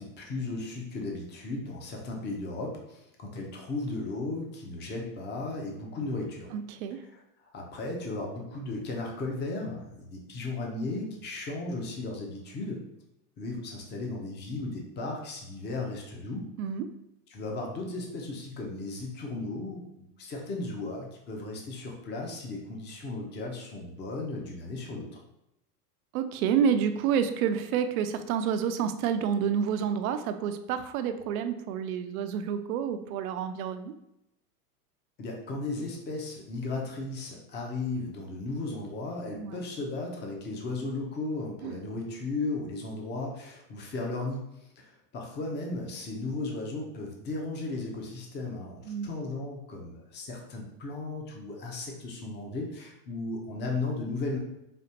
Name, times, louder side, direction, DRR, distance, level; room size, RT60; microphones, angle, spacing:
voice 1, 0.0-6.5 7.1-7.2 7.5-12.8 13.4-16.5 17.3-25.1 35.2-54.4, left 2 dB, 20° left, 0 dB, 0.7 m, -35 dB
voice 2, 6.5-7.0 16.6-16.9 26.1-33.9 39.3-39.6 41.6-41.8 48.9-49.2, right 8 dB, 60° right, 9 dB, 0.5 m, -29 dB
5.2 x 2.4 x 2.8 m, 0.84 s
hypercardioid pair, 120°, 48 cm